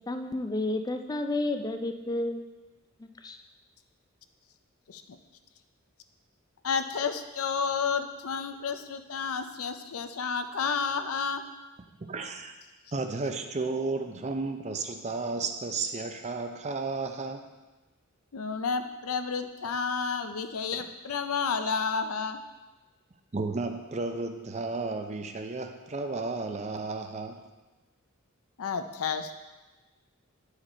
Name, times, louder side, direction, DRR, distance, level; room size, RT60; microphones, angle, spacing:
voice 1, 0.1-2.4 3.0-3.4, left 2 dB, 15° left, 0.4 m, -31 dB
voice 2, 6.6-11.4 18.3-22.4 28.6-29.3, left 5 dB, 75° left, 0.5 m, -31 dB
voice 3, 11.9-12.5 12.9-17.4 21.6-21.7 23.3-27.4, right 3 dB, 30° right, 0.5 m, -33 dB
9.4 x 4.9 x 4.3 m
head